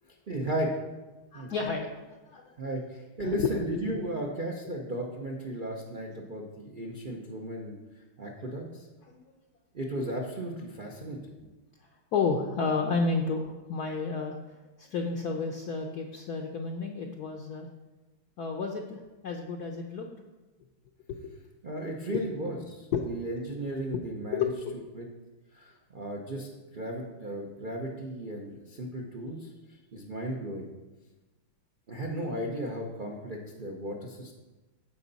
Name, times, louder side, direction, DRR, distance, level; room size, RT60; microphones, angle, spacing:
voice 1, 0.3-0.7 1.3-1.5 2.6-8.9 9.7-11.3 21.6-24.5 24.9-25.1 25.5-29.5 29.9-30.6 31.9-34.3, right 1 dB, 60° right, -1 dB, 0.5 m, -35 dB
voice 2, 1.3-2.0 2.3-2.6 3.2-3.5 9.1-9.2 12.1-17.7 18.4-20.1 21.1-21.3 22.1-22.2 22.9-23.0 23.8-24.0 24.3-24.8, left 5 dB, 65° left, 2 dB, 1.0 m, -31 dB
14.5 x 5.4 x 4.1 m, 1.1 s
omnidirectional pair, 2.3 m